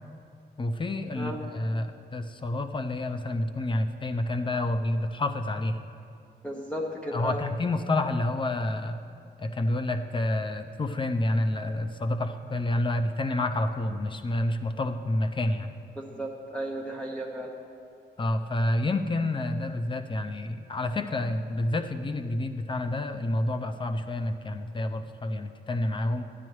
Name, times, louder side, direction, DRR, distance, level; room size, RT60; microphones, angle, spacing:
voice 1, 0.6-5.8 7.1-9.0 9.4-15.7 18.2-26.2, left 1 dB, 25° left, 8 dB, 0.5 m, -29 dB
voice 2, 6.4-7.4 16.0-17.5, right 1 dB, 5° left, -3 dB, 0.9 m, -34 dB
13.5 x 9.7 x 3.1 m, 2.4 s
wide cardioid pair, 130°, 18 cm